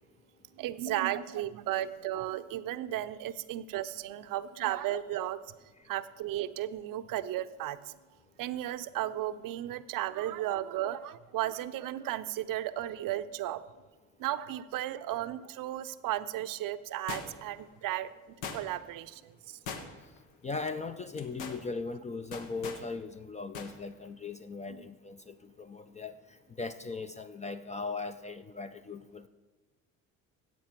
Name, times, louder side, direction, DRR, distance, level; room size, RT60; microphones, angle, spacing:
voice 1, 0.5-5.4 5.9-7.9 8.4-13.6 14.2-18.1 18.4-19.9 24.7-24.9, right 13 dB, 50° right, 13 dB, 0.6 m, -35 dB
sound 1, 17.1-17.6 18.4-18.9 19.7-20.2 20.5-20.7 21.1-21.6 22.3-22.9 23.5-23.7 24.1-24.2, left 5 dB, 70° left, 1.2 m, -40 dB
voice 2, 20.4-26.2 26.6-29.3, left 4 dB, 15° left, 10 dB, 0.4 m, -38 dB
13.0 x 8.6 x 4.5 m, 1.3 s
hypercardioid pair, 55°, 43 cm